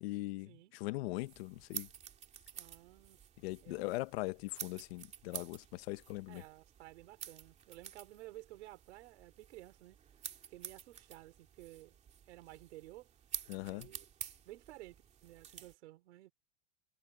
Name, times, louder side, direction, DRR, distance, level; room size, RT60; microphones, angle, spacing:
voice 1, 0.0-1.9 3.4-6.4 13.5-13.9, left 20 dB, 65° left, 1.2 m, -40 dB
sound 1, 1.2-15.7, right 8 dB, 20° right, 2.6 m, -50 dB
voice 2, 2.5-3.2 3.6-3.9 6.3-10.0 10.5-12.0 12.3-13.1 13.7-14.1 14.4-16.3, right 16 dB, 90° right, 5.1 m, -54 dB
supercardioid pair, 170°, 33 cm